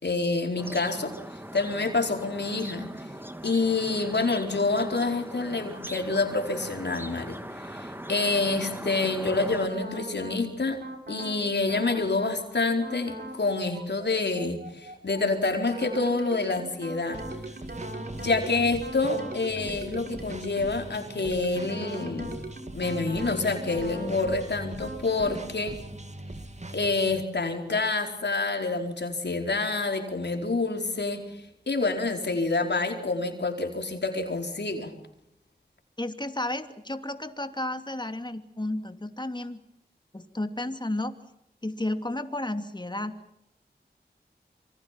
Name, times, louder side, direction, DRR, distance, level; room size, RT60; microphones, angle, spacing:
voice 1, 0.0-3.1 3.4-10.8 11.1-17.2 18.2-22.4 22.7-25.8 26.7-34.9, left 3 dB, 75° left, 4 dB, 4.6 m, -27 dB
sound 1, 0.6-9.7, equal, 10° right, 2.5 m, -40 dB
sound 2, 9.7-10.4 10.8-11.4 11.7-12.4 12.8-13.4 13.7-20.8 21.2-24.4 24.8-25.4, right 1 dB, 60° right, 6.1 m, -40 dB
sound 3, 17.1-27.2, right 2 dB, 40° right, 2.3 m, -41 dB
voice 2, 36.0-39.6 40.1-41.2 41.6-43.1, left 1 dB, 25° left, 8 dB, 2.7 m, -32 dB
27.0 x 24.0 x 6.0 m, 0.81 s
cardioid pair, 45°, 18 cm